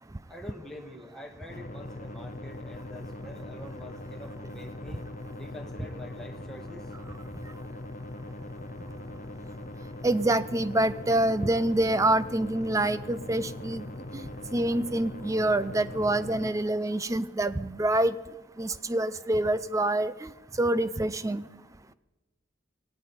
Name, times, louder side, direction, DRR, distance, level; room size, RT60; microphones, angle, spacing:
voice 1, 0.3-5.0 5.4-6.9, left 1 dB, ahead, 0 dB, 1.8 m, -45 dB
sound 1, 1.5-16.5, left 1 dB, 40° left, 0.9 m, -41 dB
voice 2, 10.0-13.9 14.1-14.3 14.5-18.1 18.6-20.3 20.6-21.4, right 1 dB, 15° right, 14 dB, 0.5 m, -26 dB
17.5 x 17.0 x 4.3 m, 1.1 s
head